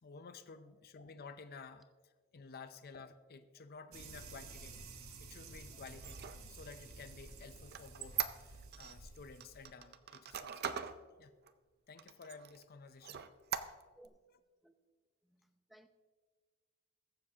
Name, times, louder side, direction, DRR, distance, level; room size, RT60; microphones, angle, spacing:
voice 1, 0.0-4.9 5.2-10.6 11.2-11.4 11.9-13.3 13.6-13.8, left 4 dB, 45° left, 0.5 m, -53 dB
sound 1, 3.9-9.7, right 3 dB, 70° right, 1.3 m, -52 dB
Squeak, 5.9-9.0 9.4-11.0 11.5-11.6 12.0-12.6 13.0-14.1, right 9 dB, 45° right, 0.5 m, -41 dB
voice 2, 15.2-15.9, right 1 dB, ahead, 0.6 m, -62 dB
21.0 x 7.4 x 2.8 m
head